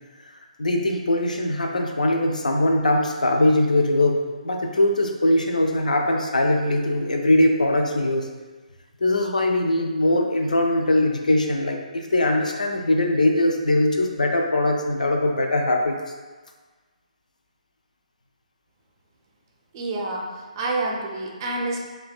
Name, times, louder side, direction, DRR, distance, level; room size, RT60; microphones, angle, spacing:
voice 1, 0.6-4.2 4.4-8.3 9.0-16.0, left 1 dB, 75° left, 2 dB, 0.4 m, -21 dB
voice 2, 19.7-21.9, right 2 dB, 30° right, -1 dB, 0.4 m, -28 dB
2.5 x 2.1 x 2.4 m, 1.3 s
figure-of-eight pair, 140°, 4 cm